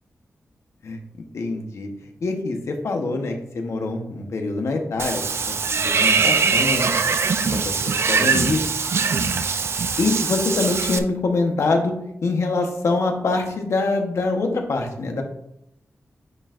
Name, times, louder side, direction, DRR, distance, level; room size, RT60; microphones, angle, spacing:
voice 1, 1.3-1.9 2.2-5.2 5.5-6.9 7.5-7.6 8.0-8.6 9.8-11.9 12.2-15.2, left 3 dB, 75° left, 3 dB, 1.1 m, -24 dB
Water / Bathtub (filling or washing), 5.0-11.0, right 5 dB, 60° right, 0.5 m, -22 dB
9.6 x 4.6 x 2.5 m, 0.78 s
wide cardioid pair, 115°, 5 cm